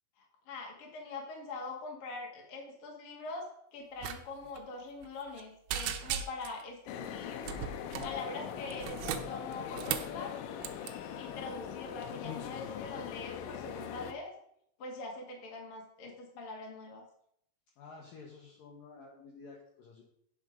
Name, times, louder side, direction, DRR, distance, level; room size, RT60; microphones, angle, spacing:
voice 1, 0.2-3.4 3.7-7.4 8.0-10.3 11.1-14.3 14.8-17.0, left 3 dB, 50° left, 0 dB, 1.6 m, -43 dB
sound 1, 4.0-4.2 4.4-4.6 5.0-5.4 5.7-6.6 7.4-8.2 8.7-10.2 10.6-10.9, right 10 dB, 85° right, 3.2 m, -37 dB
sound 2, 6.9-14.1, left 9 dB, 90° left, 3.1 m, -41 dB
voice 2, 17.8-20.0, left 4 dB, 70° left, -1 dB, 2.2 m, -51 dB
8.6 x 6.7 x 5.2 m, 0.71 s
omnidirectional pair, 5.6 m